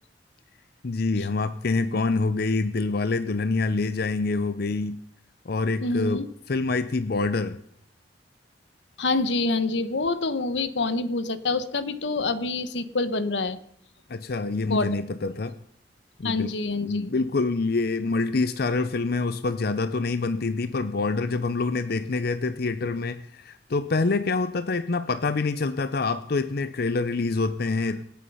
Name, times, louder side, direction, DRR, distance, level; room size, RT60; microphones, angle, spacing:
voice 1, 0.8-5.0 5.5-7.6 14.1-15.5 16.2-28.0, left 3 dB, 60° left, 12 dB, 0.6 m, -26 dB
voice 2, 5.8-6.3 9.0-13.6 14.7-14.9 16.2-17.1, left 3 dB, 85° left, 13 dB, 1.1 m, -26 dB
25.0 x 8.4 x 5.6 m, 0.71 s
head